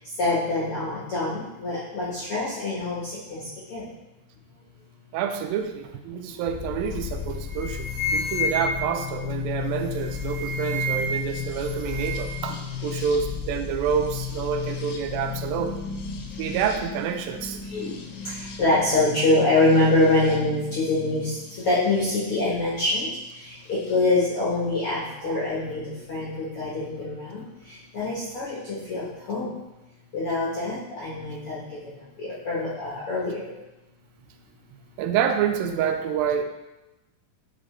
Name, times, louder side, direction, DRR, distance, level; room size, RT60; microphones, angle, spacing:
voice 1, 0.2-3.0 3.3-3.4 3.7-3.8 17.7-17.9 18.6-21.3 21.6-23.1 23.7-25.8 26.1-27.4 27.9-29.5 30.1-31.6 32.2-33.5, left 2 dB, 65° left, -8 dB, 1.4 m, -24 dB
voice 2, 5.1-15.8 16.4-17.6 25.2-25.5 35.0-36.4, right 7 dB, 85° right, 6 dB, 2.3 m, -28 dB
sound 1, 6.5-22.2 23.4-24.0, left 6 dB, 85° left, 2.6 m, -34 dB
sound 2, 6.9-7.1 7.4-9.0 9.9-11.3 11.6-12.4, left 1 dB, 60° right, 1.8 m, -30 dB
8.4 x 3.8 x 3.2 m, 1.0 s
omnidirectional pair, 4.1 m